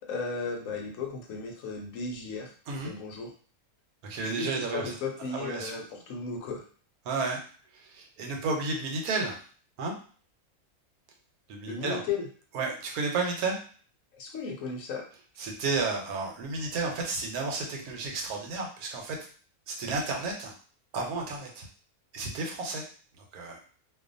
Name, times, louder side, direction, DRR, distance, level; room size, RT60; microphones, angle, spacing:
voice 1, 0.0-2.5 2.8-3.3 4.2-6.6 11.7-12.2 14.1-15.1, left 4 dB, 70° left, 1 dB, 0.9 m, -35 dB
voice 2, 4.0-5.0 5.3-5.7 7.0-7.4 7.7-9.4 9.8-10.0 11.5-12.0 12.5-13.6 15.4-19.2 19.7-20.5 20.9-21.7 22.1-22.8 23.1-23.6, right 3 dB, 85° right, 1 dB, 1.1 m, -32 dB
2.5 x 2.3 x 2.5 m, 0.42 s
omnidirectional pair, 1.5 m